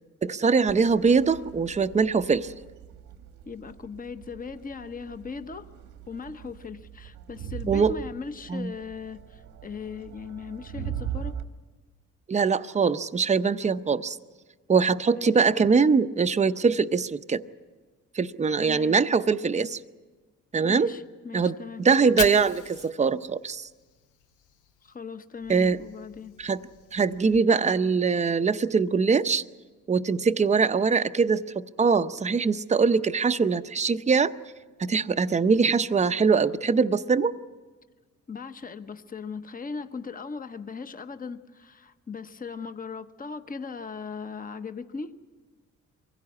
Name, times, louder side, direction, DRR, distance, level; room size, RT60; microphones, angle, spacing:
voice 1, 0.2-2.5 7.7-7.9 8.5-8.7 12.3-14.2 14.7-17.4 18.1-19.8 20.5-20.9 21.3-23.7 25.5-25.8 26.4-26.6 26.9-29.4 29.9-34.3 34.8-37.3, right 5 dB, 25° right, 11 dB, 0.7 m, -22 dB
Crowd, 0.7-11.4, right 9 dB, 85° right, 1.5 m, -40 dB
voice 2, 3.4-5.7 6.1-11.4 15.1-15.3 18.6-19.0 20.7-21.8 24.8-26.3 38.3-45.1, left 5 dB, 30° left, 10 dB, 1.1 m, -38 dB
Fire, 21.8-25.0 25.3-27.4, left 9 dB, 80° left, 0.9 m, -41 dB
23.5 x 16.5 x 8.5 m, 1.4 s
cardioid pair, 80°, 30 cm